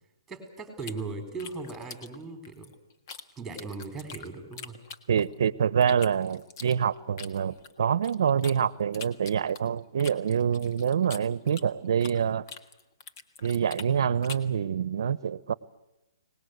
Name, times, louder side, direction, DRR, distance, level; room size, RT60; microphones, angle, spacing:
voice 1, 0.3-2.7 3.4-4.8, right 3 dB, 5° right, 4.1 m, -38 dB
sound 1, 0.8-3.2 3.5-5.4 5.8-8.6 8.9-12.2 12.5-14.5, left 5 dB, 45° left, 1.6 m, -44 dB
voice 2, 5.1-12.4 13.4-15.5, right 8 dB, 60° right, 0.9 m, -26 dB
24.0 x 19.5 x 8.1 m
hypercardioid pair, 155°, 3 cm